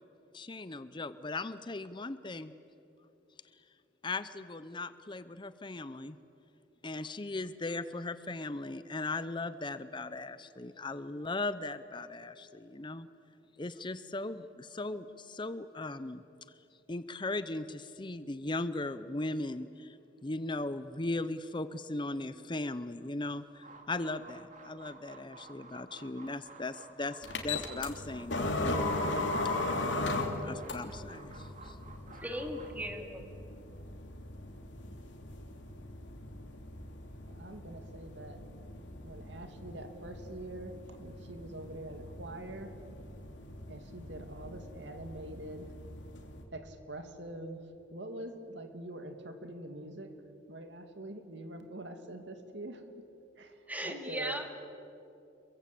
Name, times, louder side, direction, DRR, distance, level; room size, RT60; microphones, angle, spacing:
voice 1, 0.3-2.5 4.0-6.2 6.8-13.1 13.6-16.2 16.9-28.9 30.4-31.8, left 2 dB, 25° left, 13 dB, 0.7 m, -38 dB
sound 1, 23.5-32.9, right 3 dB, 45° right, 2.2 m, -53 dB
sound 2, 27.2-46.4, left 2 dB, 80° left, 3.0 m, -38 dB
voice 2, 32.1-33.2 53.7-54.6, equal, 10° right, 4 dB, 2.4 m, -38 dB
voice 3, 37.3-38.4 39.0-42.7 43.7-45.7 46.5-47.6 47.9-50.2 50.5-52.8 53.4-53.5 53.8-54.4, right 1 dB, 75° right, 6 dB, 2.5 m, -44 dB
27.5 x 23.0 x 8.5 m, 2.8 s
head